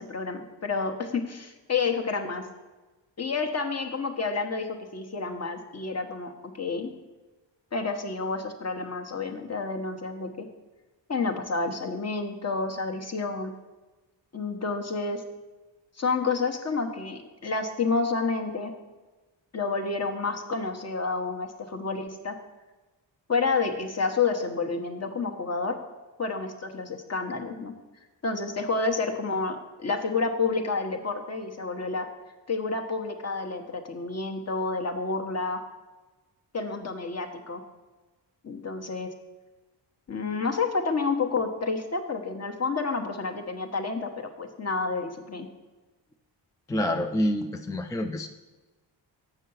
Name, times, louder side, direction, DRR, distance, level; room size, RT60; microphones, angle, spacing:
voice 1, 0.0-2.4 3.2-6.9 7.7-10.5 11.1-13.5 14.3-15.2 16.0-18.7 19.5-22.4 23.3-25.8 26.2-27.7 28.2-32.1 32.5-35.6 36.5-37.6 38.4-39.1 40.1-45.5, left 4 dB, 35° left, 4 dB, 1.0 m, -29 dB
voice 2, 46.7-48.3, left 1 dB, 10° left, 4 dB, 0.3 m, -27 dB
7.2 x 5.6 x 5.5 m, 1.2 s
cardioid pair, 70°, 44 cm